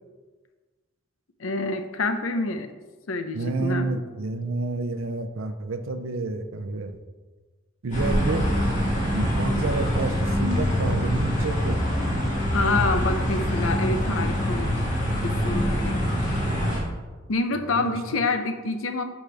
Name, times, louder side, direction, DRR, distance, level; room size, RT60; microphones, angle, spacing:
voice 1, 1.4-2.7 3.1-4.0 12.5-14.8 15.2-16.0 17.3-19.0, left 3 dB, 90° left, 8 dB, 0.7 m, -27 dB
voice 2, 3.3-7.0 7.8-8.5 9.1-11.8 17.6-18.0, right 3 dB, 80° right, 10 dB, 0.6 m, -29 dB
sound 1, 7.9-16.8, equal, 40° left, 2.0 m, -24 dB
10.0 x 5.3 x 3.4 m, 1.3 s
head